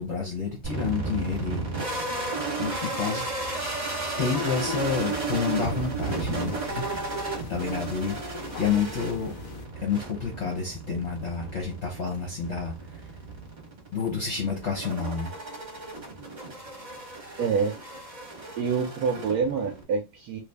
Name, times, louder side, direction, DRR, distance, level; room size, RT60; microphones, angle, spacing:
voice 1, 0.0-2.1 2.6-3.3 4.2-6.9 7.5-9.4 9.8-13.1 13.9-15.3, left 5 dB, 55° left, 0.8 m, -29 dB
sound 1, 0.6-19.8, right 3 dB, 30° right, 0.9 m, -34 dB
sound 2, 4.5-9.7, left 6 dB, 90° left, 0.7 m, -43 dB
voice 2, 17.4-17.7 18.6-20.4, right 5 dB, 70° right, 0.9 m, -26 dB
3.3 x 2.4 x 3.3 m
omnidirectional pair, 2.1 m